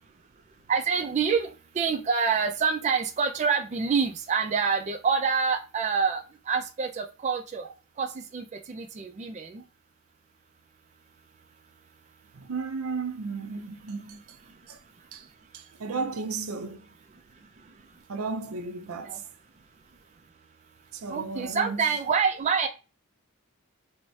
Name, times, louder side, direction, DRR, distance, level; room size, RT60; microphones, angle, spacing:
voice 1, 0.7-1.5 1.8-7.6 8.0-9.6 19.1-19.2 21.1-22.7, right 5 dB, 35° right, 0.3 m, -27 dB
voice 2, 12.3-14.2 14.7-14.8 15.1-15.3 15.5-16.9 18.1-19.2 20.9-21.8, right 4 dB, 85° right, 0.5 m, -34 dB
4.6 x 2.0 x 2.7 m
head